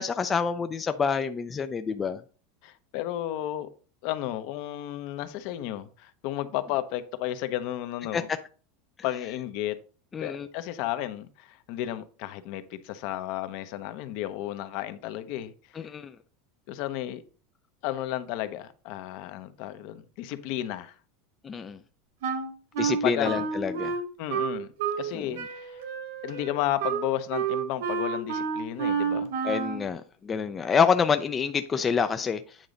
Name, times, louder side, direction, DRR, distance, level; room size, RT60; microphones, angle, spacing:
voice 1, 0.0-2.2 8.1-8.2 10.1-10.5 15.7-16.2 21.4-21.8 22.8-23.9 25.1-25.4 29.4-32.6, left 6 dB, 20° left, 0.4 m, -27 dB
voice 2, 2.6-3.7 4.0-8.3 9.0-9.7 10.2-15.5 16.7-17.2 17.8-20.9 23.0-23.5 24.2-24.7 25.0-25.8 26.2-29.3, left 13 dB, 55° left, 0.8 m, -33 dB
Wind instrument woodwind instrument, 22.2-25.1 25.3-29.9, right 6 dB, 75° right, 1.7 m, -30 dB
8.9 x 3.9 x 5.1 m
supercardioid pair, 150°, 0 cm